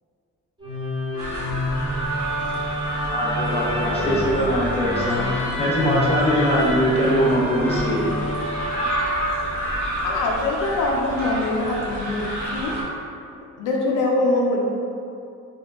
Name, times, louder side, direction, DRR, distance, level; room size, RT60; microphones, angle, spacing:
Musical instrument, 0.6-9.8, equal, 15° right, 1.1 m, -28 dB
sound 1, 1.2-12.8, equal, 85° right, 0.7 m, -30 dB
voice 1, 3.1-8.0, equal, 20° left, -5 dB, 0.9 m, -22 dB
voice 2, 10.0-12.8 13.6-14.6, left 2 dB, 85° left, -1 dB, 0.5 m, -23 dB
2.6 x 2.2 x 3.5 m, 2.5 s
cardioid pair, 90°, 30 cm